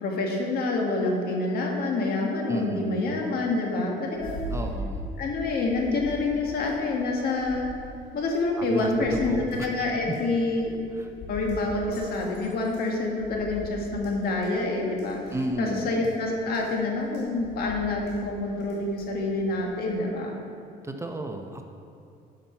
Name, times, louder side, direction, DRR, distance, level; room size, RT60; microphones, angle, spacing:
voice 1, 0.0-4.6 5.2-7.7 8.1-10.7 11.3-15.2 15.6-20.4, left 2 dB, 65° left, 0 dB, 1.7 m, -27 dB
voice 2, 2.5-3.0 4.5-5.1 8.6-9.7 11.0-11.1 15.3-15.9 20.8-21.6, right 2 dB, 15° right, 4 dB, 0.7 m, -33 dB
sound 1, 4.1-20.0, equal, 80° left, 2.2 m, -41 dB
11.0 x 5.9 x 4.5 m, 2.5 s
cardioid pair, 110°, 17 cm